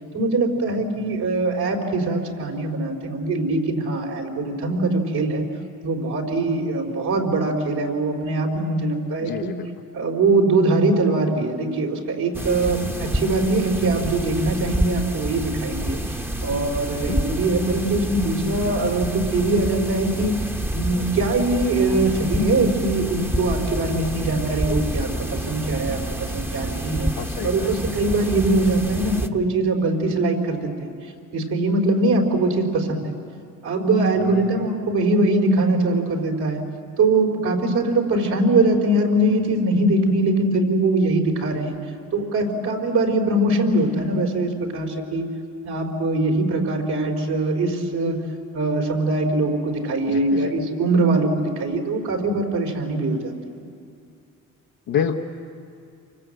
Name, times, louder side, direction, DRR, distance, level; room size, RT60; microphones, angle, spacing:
voice 1, 0.1-5.5 5.8-9.5 9.9-20.4 20.7-27.1 27.4-30.9 31.3-33.1 33.6-36.6 37.0-41.8 42.1-45.3 45.6-48.2 48.5-53.3, right 2 dB, 75° right, 1 dB, 4.2 m, -22 dB
voice 2, 9.2-9.7 17.1-17.2 27.2-27.9 34.1-34.8 50.1-50.5 54.9-55.1, left 8 dB, 85° left, -2 dB, 1.3 m, -28 dB
sound 1, 12.3-29.3, right 1 dB, 5° right, 1.1 m, -28 dB
29.0 x 24.5 x 7.9 m, 2.4 s
cardioid pair, 90°, 30 cm